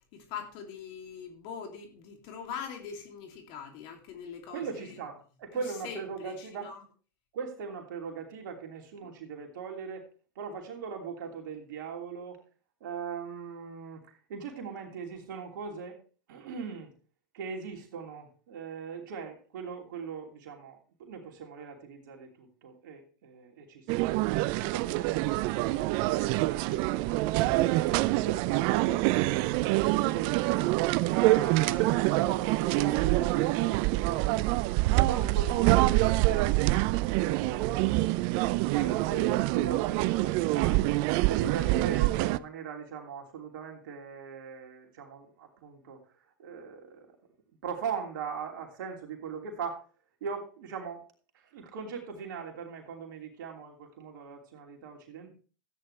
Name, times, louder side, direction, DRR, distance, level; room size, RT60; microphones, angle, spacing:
voice 1, 0.0-5.0 5.6-6.0 6.2-6.8, left 7 dB, 55° left, 2.9 m, -42 dB
voice 2, 4.5-6.7 7.3-10.0 10.3-12.4 12.8-14.0 14.3-16.0 16.3-16.9 17.3-24.1 24.6-27.9 28.2-34.6 34.9-36.8 37.2-38.4 38.7-46.0 46.4-47.1 47.6-49.8 50.2-51.1 51.3-55.3, right 6 dB, 70° right, 3.0 m, -40 dB
sound 1, 23.9-42.4, right 19 dB, 55° right, 0.5 m, -26 dB
14.0 x 9.6 x 3.3 m
hypercardioid pair, 95°, 11 cm